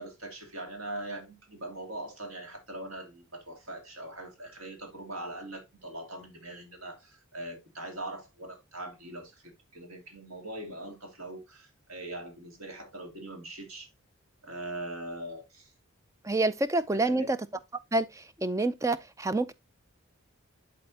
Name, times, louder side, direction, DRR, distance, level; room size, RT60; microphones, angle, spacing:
voice 1, 0.0-13.9 14.4-15.7 16.9-17.3, right 1 dB, 85° right, 2.4 m, -41 dB
voice 2, 16.2-17.4 17.9-19.5, right 2 dB, 15° right, 0.4 m, -27 dB
11.0 x 4.0 x 2.8 m
head